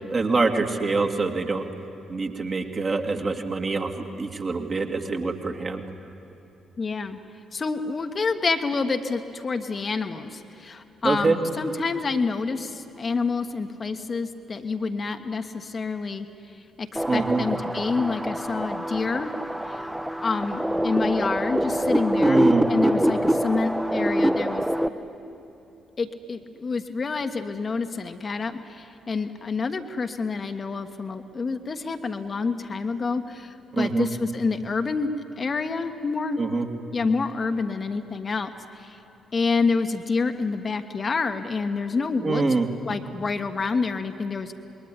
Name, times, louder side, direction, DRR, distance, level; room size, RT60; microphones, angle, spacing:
voice 1, 0.1-1.6 2.1-3.9 4.2-5.8 11.0-11.4 17.0-17.4 22.2-22.7 33.7-34.1 36.4-36.7 42.2-42.7, right 3 dB, 35° right, 3 dB, 2.4 m, -24 dB
voice 2, 6.8-7.2 7.5-16.3 16.8-19.3 19.7-19.9 20.2-22.4 22.7-24.6 26.0-36.6 36.9-39.0 39.3-42.5 42.8-44.5, left 4 dB, 35° left, 7 dB, 1.4 m, -28 dB
sound 1, 17.0-24.9, equal, 5° right, 1.2 m, -25 dB
27.5 x 21.5 x 10.0 m, 2.9 s
figure-of-eight pair, 40°, 0 cm